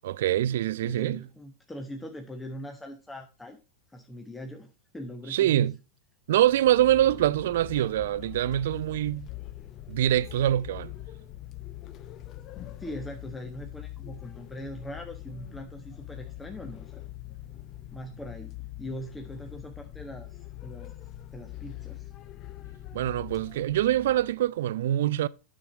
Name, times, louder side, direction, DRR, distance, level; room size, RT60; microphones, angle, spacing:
voice 1, 0.0-1.2 5.3-5.8 6.3-9.3 9.9-10.9 22.9-25.3, right 12 dB, 55° right, 0.4 m, -24 dB
voice 2, 0.8-3.6 3.9-5.7 12.8-17.0 17.9-20.9 21.3-22.1, equal, 10° left, 0.9 m, -41 dB
sound 1, 6.3-24.5, left 14 dB, 35° left, 0.7 m, -43 dB
9.8 x 6.5 x 3.7 m
figure-of-eight pair, 90°, 0 cm